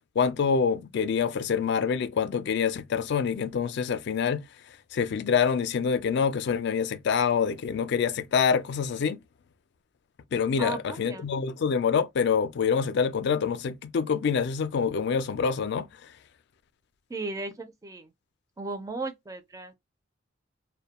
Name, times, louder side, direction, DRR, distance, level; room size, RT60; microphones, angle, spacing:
voice 1, 0.2-4.4 4.9-9.2 10.3-15.9, left 6 dB, 60° left, 0.3 m, -26 dB
voice 2, 10.6-11.3 17.1-18.1 18.6-19.7, right 3 dB, 20° right, 0.4 m, -35 dB
2.2 x 2.1 x 2.8 m
head